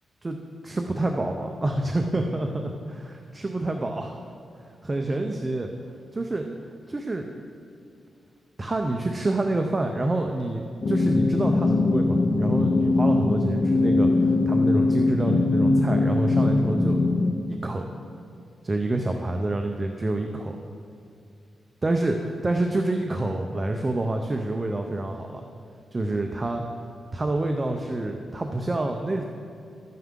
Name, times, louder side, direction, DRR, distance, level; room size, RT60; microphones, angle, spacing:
voice 1, 0.6-4.2 4.8-5.7 6.1-6.5 6.9-7.3 8.6-17.0 17.5-17.8 18.6-20.6 21.8-25.5 25.9-26.6 27.1-29.2, right 2 dB, 20° right, 3 dB, 0.5 m, -27 dB
sound 1, 10.8-17.3, left 2 dB, 40° left, 0.5 m, -21 dB
12.5 x 9.3 x 3.7 m, 2.4 s
wide cardioid pair, 170°, 0 cm